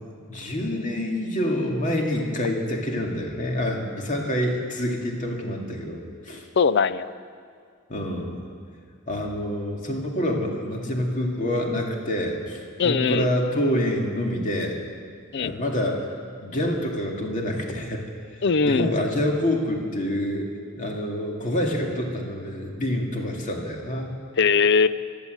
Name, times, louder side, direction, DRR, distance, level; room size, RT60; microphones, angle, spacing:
voice 1, 0.3-6.5 7.9-8.4 9.1-14.8 15.4-16.1 16.4-18.0 18.3-20.5 20.8-24.1, left 1 dB, 35° left, 0 dB, 2.3 m, -27 dB
voice 2, 6.6-7.1 12.8-13.3 15.3-15.5 18.4-18.9 24.4-24.9, left 5 dB, 50° left, 15 dB, 0.5 m, -20 dB
15.5 x 11.5 x 8.1 m, 2.2 s
head